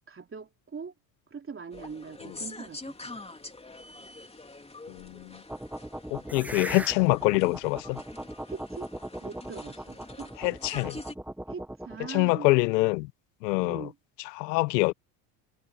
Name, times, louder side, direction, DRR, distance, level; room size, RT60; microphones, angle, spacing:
voice 1, 0.1-0.9 1.3-3.2 8.5-8.9 9.2-10.6 11.5-12.5 13.6-14.0, right 5 dB, 25° right, 3.7 m, -42 dB
sound 1, 1.7-11.2, left 2 dB, 10° left, 3.1 m, -46 dB
voice 2, 4.9-5.4 6.1-8.0 10.4-11.0 12.1-13.1 13.4-13.9 14.3-14.9, left 23 dB, 85° left, 1.2 m, -25 dB
sound 2, 5.5-12.1, right 1 dB, 5° right, 1.2 m, -39 dB
supercardioid pair, 85°, 48 cm